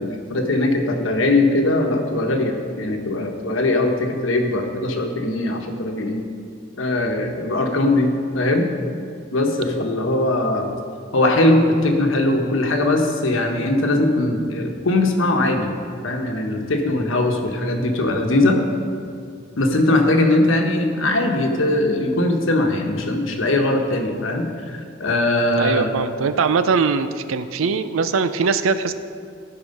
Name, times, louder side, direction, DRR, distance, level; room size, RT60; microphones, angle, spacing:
voice 1, 0.0-6.3 6.8-8.7 9.3-10.7 11.1-15.7 16.0-18.6 19.6-24.5 24.7-25.9, left 2 dB, 75° left, 3 dB, 1.1 m, -20 dB
voice 2, 25.6-28.9, right 5 dB, 80° right, 12 dB, 0.5 m, -21 dB
14.5 x 4.8 x 5.3 m, 2.3 s
head